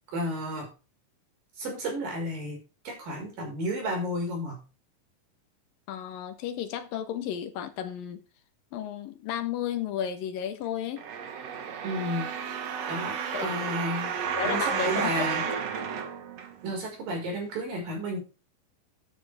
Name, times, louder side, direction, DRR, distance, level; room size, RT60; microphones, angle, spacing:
voice 1, 0.1-0.7 1.6-2.6 2.8-4.6 11.8-12.3 12.9-14.1 14.4-15.4 16.6-18.2, equal, 80° right, 6.8 m, -32 dB
voice 2, 5.9-8.2 8.7-11.0 13.3-13.5 14.4-15.6, left 9 dB, 85° left, 3.0 m, -33 dB
sound 1, 11.0-16.9 17.5-17.6, right 7 dB, 60° right, 2.2 m, -32 dB
12.0 x 9.8 x 3.5 m
omnidirectional pair, 3.9 m